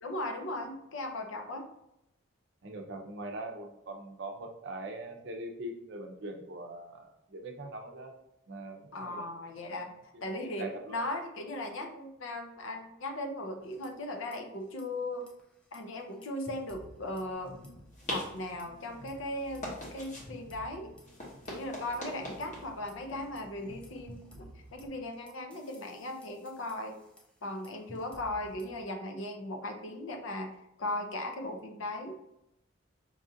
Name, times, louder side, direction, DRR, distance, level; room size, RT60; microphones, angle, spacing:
voice 1, 0.0-1.7 8.9-9.9 10.2-15.3 15.7-17.5 18.1-20.9 21.5-27.0 27.4-30.5 30.8-32.2, left 1 dB, 65° left, 4 dB, 0.6 m, -38 dB
voice 2, 2.6-8.1 8.5-9.3 9.7-10.0 10.6-11.0, right 2 dB, 55° right, 3 dB, 0.6 m, -42 dB
sound 1, 13.6-14.4 14.6-14.8 15.2-17.9 18.1-18.6 19.1-22.4 22.9-28.8, equal, 5° left, 0.3 m, -55 dB
sound 2, 17.3-24.9, left 1 dB, 35° left, 0.9 m, -44 dB
5.3 x 2.5 x 2.6 m, 0.85 s
head